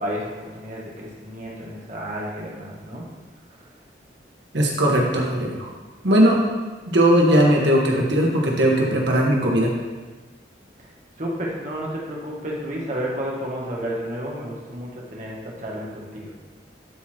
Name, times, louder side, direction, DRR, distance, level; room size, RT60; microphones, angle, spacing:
voice 1, 0.0-3.0 11.2-16.3, equal, 40° right, -4 dB, 1.8 m, -31 dB
voice 2, 4.5-5.7 6.0-6.4 6.9-9.7, right 1 dB, 80° right, -1 dB, 1.7 m, -18 dB
12.0 x 4.4 x 4.6 m, 1.3 s
head